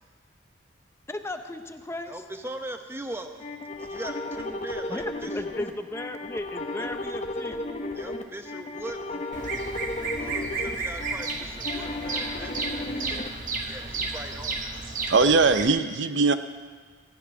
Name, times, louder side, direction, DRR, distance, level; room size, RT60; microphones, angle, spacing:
voice 1, 1.1-2.2 4.9-7.6, left 1 dB, 15° left, 7 dB, 0.6 m, -36 dB
voice 2, 2.1-3.5 3.8-5.3 6.8-6.9 7.9-9.3 10.2-13.2 13.6-14.7, right 1 dB, 15° right, 6 dB, 0.8 m, -40 dB
sound 1, 3.4-13.3, left 2 dB, 40° left, 1.0 m, -34 dB
Bird vocalization bird call bird song, 9.3-15.7, right 3 dB, 45° right, 1.2 m, -33 dB
voice 3, 15.1-16.3, right 4 dB, 75° right, 10 dB, 0.7 m, -20 dB
16.0 x 6.0 x 9.5 m, 1.5 s
head